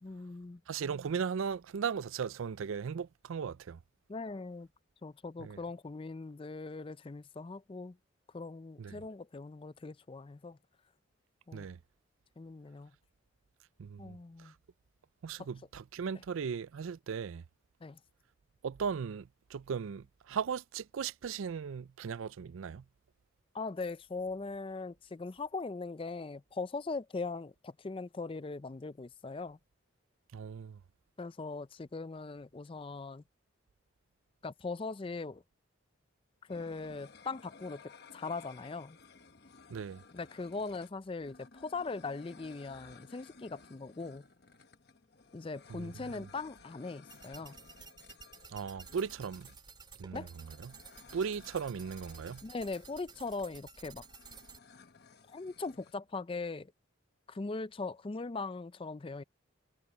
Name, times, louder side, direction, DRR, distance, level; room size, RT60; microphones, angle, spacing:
voice 1, 0.0-0.6 4.1-4.7 5.0-8.0 8.3-10.6 11.5-11.7 12.4-12.9 14.0-14.5 17.8-18.0 23.5-29.6 31.2-33.2 34.4-35.4 36.5-39.0 40.1-44.2 45.3-47.6 50.1-50.3 52.4-54.0 55.3-56.7 57.3-59.2, left 3 dB, 25° left, 0.4 m, -40 dB
voice 2, 0.7-3.8 5.4-5.6 8.8-9.0 11.5-11.8 13.8-14.2 14.4-14.5 15.2-17.4 18.6-22.8 30.3-30.8 39.7-40.0 45.7-46.3 48.5-49.5 50.0-50.7 51.1-52.4, right 6 dB, 75° right, 0.4 m, -37 dB
sound 1, 36.5-55.9, left 4 dB, 50° left, 1.1 m, -58 dB
sound 2, 47.1-54.6, right 5 dB, 20° right, 2.7 m, -53 dB
head